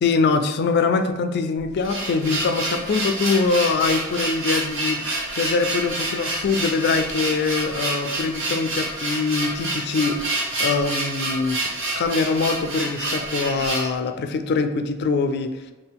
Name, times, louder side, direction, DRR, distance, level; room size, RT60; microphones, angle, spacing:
voice 1, 0.0-11.6 12.0-15.6, left 4 dB, 50° left, 8 dB, 0.3 m, -23 dB
sound 1, 1.6-13.9, right 2 dB, 65° right, 1.3 m, -28 dB
4.2 x 2.4 x 3.4 m, 1.1 s
head